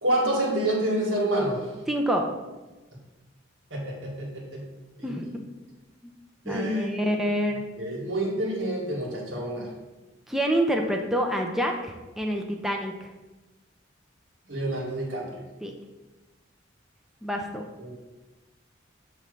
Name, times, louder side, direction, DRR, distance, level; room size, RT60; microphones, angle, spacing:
voice 1, 0.0-1.7 3.7-4.7 5.0-5.2 6.5-7.2 7.8-9.7 14.5-15.4 17.8-17.9, right 1 dB, 85° right, -2 dB, 1.8 m, -28 dB
voice 2, 1.9-2.3 5.0-5.3 6.5-7.6 10.3-12.9 15.6-15.7 17.2-17.7, equal, ahead, 1 dB, 0.5 m, -27 dB
7.0 x 3.2 x 5.2 m, 1.1 s
head